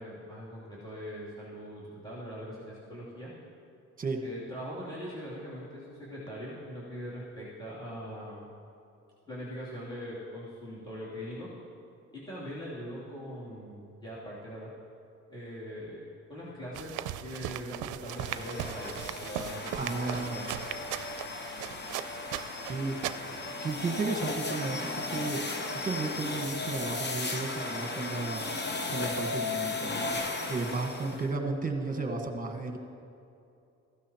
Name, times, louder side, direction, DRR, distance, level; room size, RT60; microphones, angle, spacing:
voice 1, 0.0-3.3 4.2-8.5 9.3-11.5 12.1-14.7 15.3-16.0 16.3-17.0 17.2-20.5, equal, 15° left, -9 dB, 3.1 m, -41 dB
sound 1, 16.7-23.5, right 12 dB, 80° right, 0.5 m, -38 dB
sound 2, 18.1-31.3, left 3 dB, 35° left, 1.0 m, -36 dB
voice 2, 19.7-20.4 22.6-23.0 23.6-25.6 25.8-28.4 28.9-32.8, right 3 dB, 30° right, 4 dB, 1.4 m, -33 dB
15.0 x 12.5 x 3.0 m, 2.6 s
cardioid pair, 90°, 30 cm